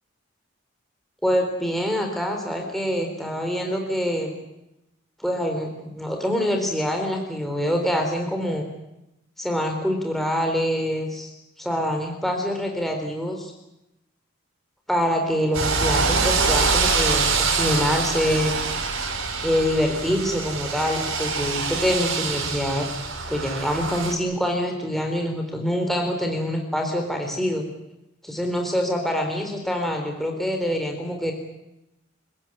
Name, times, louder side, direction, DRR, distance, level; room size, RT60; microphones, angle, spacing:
voice 1, 1.2-4.4 5.2-8.7 9.4-11.3 11.6-13.5 14.9-18.6 19.4-22.9 23.3-27.6 28.2-31.3, equal, ahead, 2 dB, 4.0 m, -25 dB
sound 1, 15.5-24.1, right 4 dB, 75° right, 4.7 m, -25 dB
28.5 x 16.0 x 10.0 m, 0.89 s
head